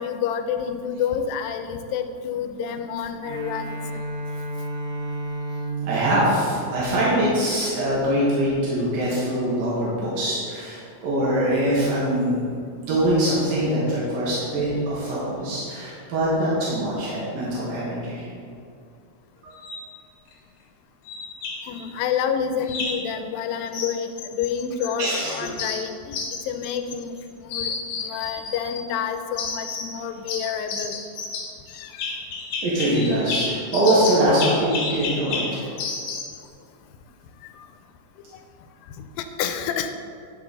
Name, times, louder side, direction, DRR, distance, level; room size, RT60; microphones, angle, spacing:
voice 1, 0.0-3.8 21.6-26.2 26.5-27.1 27.4-31.0 31.7-32.2 37.6-37.7 39.2-39.9, left 7 dB, 90° left, 8 dB, 2.4 m, -28 dB
Bowed string instrument, 3.2-7.5, right 2 dB, 65° right, 1.9 m, -32 dB
voice 2, 5.8-12.4 12.8-18.3 19.4-19.6 25.0-25.5 32.6-35.7, right 1 dB, 85° right, -7 dB, 3.4 m, -23 dB
sound 1, 19.5-19.9 21.0-21.8 22.7-23.1 23.7-25.0 25.3-27.2 27.5-28.8 29.4-30.0 30.3-36.4, left 4 dB, 65° left, 1.8 m, -31 dB
12.0 x 6.1 x 4.0 m, 2.3 s
omnidirectional pair, 4.0 m